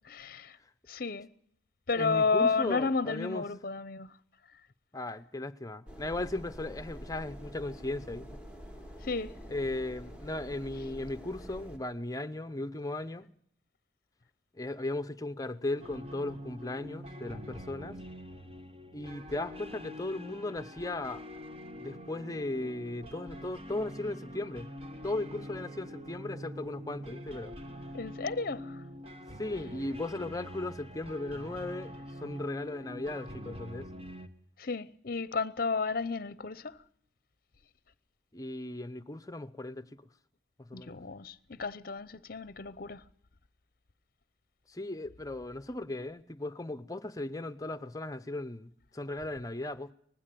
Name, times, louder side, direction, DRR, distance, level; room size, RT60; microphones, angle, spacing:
voice 1, 0.0-0.6 0.9-1.3 1.9-4.1 9.0-9.3 27.9-28.8 34.6-36.8 40.7-43.0, left 4 dB, 50° left, 0.8 m, -32 dB
voice 2, 2.0-3.5 4.9-8.3 9.5-13.3 14.5-18.0 18.9-21.2 21.7-24.7 25.0-27.5 29.4-31.9 32.2-33.9 38.3-40.0 40.6-41.0 44.7-49.9, left 2 dB, 20° left, 0.8 m, -37 dB
sound 1, 5.9-11.8, equal, 5° right, 1.7 m, -46 dB
sound 2, 15.8-34.3, equal, 30° right, 1.4 m, -45 dB
19.5 x 15.5 x 9.2 m
head